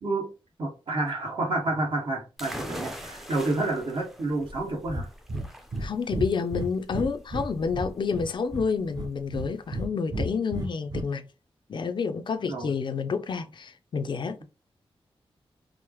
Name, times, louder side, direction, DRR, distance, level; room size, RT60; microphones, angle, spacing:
voice 1, 0.6-5.1 12.5-12.7, right 2 dB, 60° right, 1.4 m, -29 dB
sound 1, 2.4-9.9, equal, 5° right, 0.5 m, -43 dB
Breathing, 4.9-5.0 5.3-5.5 5.7-5.9 6.1-7.5 7.7-8.6 8.9-9.9 10.1-11.0, right 1 dB, 40° right, 0.8 m, -31 dB
voice 2, 5.8-11.3 11.7-14.4, left 5 dB, 55° left, 0.4 m, -29 dB
4.6 x 2.0 x 3.0 m
wide cardioid pair, 170°, 10 cm